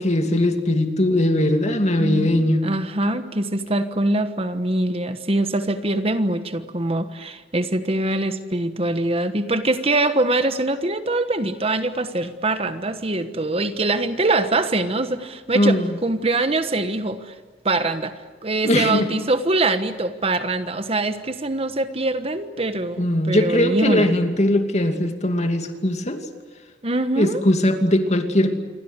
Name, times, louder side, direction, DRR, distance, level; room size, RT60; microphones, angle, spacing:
voice 1, 0.0-2.6 15.5-16.0 18.6-19.1 23.0-26.2 27.1-28.6, left 1 dB, 40° left, 6 dB, 2.5 m, -20 dB
voice 2, 2.0-17.3 17.6-18.1 18.4-24.1 26.8-27.4, right 2 dB, 35° right, 10 dB, 1.3 m, -23 dB
28.0 x 24.0 x 8.2 m, 1.4 s
head